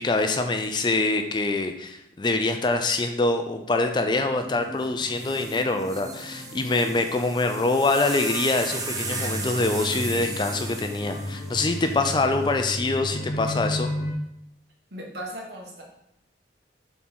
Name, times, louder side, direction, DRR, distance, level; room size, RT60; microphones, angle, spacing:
voice 1, 0.0-13.9, left 2 dB, 25° left, 6 dB, 0.4 m, -25 dB
sound 1, 3.9-14.1, left 1 dB, 55° left, 1.0 m, -35 dB
sound 2, 4.8-4.9 5.2-12.6 13.4-13.9, right 3 dB, 20° right, 0.6 m, -36 dB
voice 2, 14.9-15.8, right 1 dB, 65° right, -2 dB, 1.6 m, -37 dB
4.4 x 4.2 x 5.5 m, 0.82 s
head